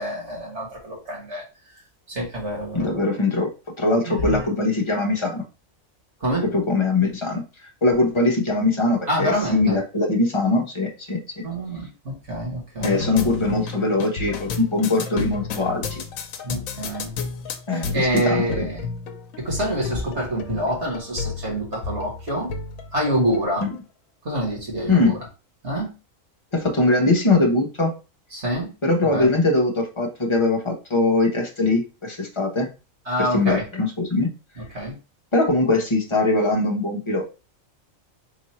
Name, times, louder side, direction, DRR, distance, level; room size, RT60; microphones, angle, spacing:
voice 1, 0.0-1.4 2.1-3.0 4.1-4.4 6.2-6.5 9.1-9.8 11.4-11.9 12.3-13.0 16.4-17.1 17.9-18.8 19.4-22.5 22.9-23.6 24.3-25.1 25.6-25.9 28.3-28.7 29.1-29.3 33.1-33.6 34.7-34.9, equal, 55° right, -2 dB, 2.0 m, -26 dB
voice 2, 2.7-3.5 3.8-5.4 6.4-7.4 7.8-11.4 12.8-16.0 17.7-18.7 23.6-23.8 24.9-25.1 26.5-27.9 28.8-32.7 33.2-34.3 35.3-37.2, left 2 dB, 25° left, 1 dB, 0.9 m, -21 dB
sound 1, 12.8-23.7, left 4 dB, 85° left, 1.1 m, -32 dB
4.0 x 2.6 x 4.2 m, 0.31 s
omnidirectional pair, 1.4 m